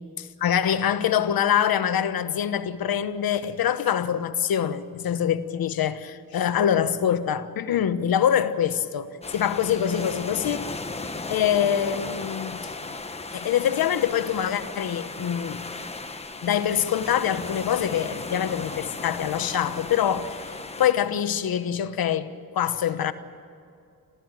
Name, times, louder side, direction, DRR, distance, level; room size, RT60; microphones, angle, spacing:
voice 1, 0.2-10.7 11.3-12.7 13.3-15.6 16.4-20.4 20.8-23.1, left 9 dB, 85° left, 1.2 m, -24 dB
sound 1, 9.2-20.9, left 3 dB, 20° left, 1.1 m, -36 dB
29.0 x 14.5 x 9.0 m
wide cardioid pair, 150°, 35 cm